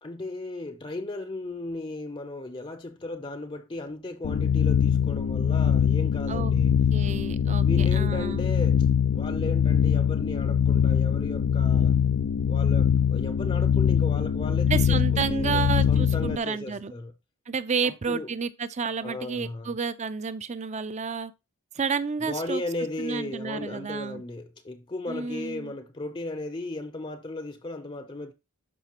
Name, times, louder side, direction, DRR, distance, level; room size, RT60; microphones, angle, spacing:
voice 1, 0.0-6.8 7.6-8.8 9.1-12.0 12.5-17.1 17.8-18.3 19.0-19.7 22.2-28.3, left 2 dB, 25° left, 0.6 m, -36 dB
sound 1, 4.2-16.4, left 8 dB, 65° left, 0.3 m, -23 dB
voice 2, 6.9-8.5 14.7-16.9 17.5-21.3 21.7-22.6 23.0-24.2 25.1-25.7, right 5 dB, 35° right, 0.5 m, -30 dB
12.5 x 5.0 x 2.9 m
head